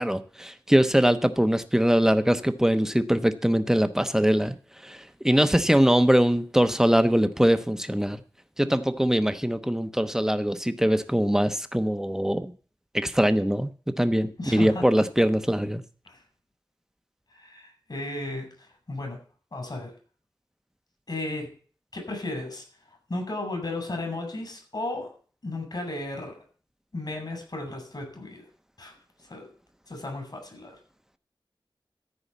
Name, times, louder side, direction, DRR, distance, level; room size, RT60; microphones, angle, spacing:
voice 1, 0.0-4.5 4.8-5.0 5.2-8.2 8.6-12.5 12.9-13.7 14.0-15.8, equal, 5° right, 10 dB, 1.0 m, -22 dB
voice 2, 14.4-14.9 16.0-16.2 17.3-19.2 19.5-19.9 21.1-21.5 21.9-22.6 23.1-25.1 25.4-26.4 26.9-28.4 28.8-28.9 29.3-29.5 29.9-30.7, left 2 dB, 55° left, 2 dB, 6.0 m, -34 dB
14.0 x 4.9 x 8.2 m, 0.41 s
wide cardioid pair, 70°, 8 cm